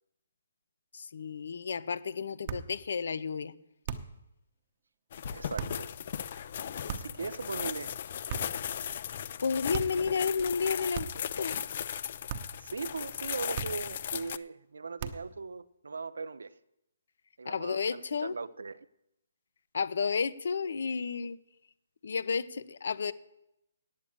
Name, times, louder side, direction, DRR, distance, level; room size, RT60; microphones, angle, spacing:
voice 1, 0.9-3.5 9.4-11.5 17.4-18.3 19.7-21.4 22.0-23.1, left 5 dB, 65° left, 0.8 m, -32 dB
sound 1, 2.4-2.8 3.8-4.2 5.5-5.8 6.9-7.3 8.3-8.7 9.7-10.1 10.9-11.3 12.3-12.6 13.5-14.0 15.0-15.4, right 7 dB, 35° right, 0.9 m, -38 dB
sound 2, 5.1-14.4, left 9 dB, 40° left, 0.4 m, -37 dB
voice 2, 5.3-6.2 6.9-8.0 12.6-16.6 17.4-18.9, right 4 dB, 90° right, 0.7 m, -39 dB
8.5 x 8.5 x 8.7 m
hypercardioid pair, 165°, 0 cm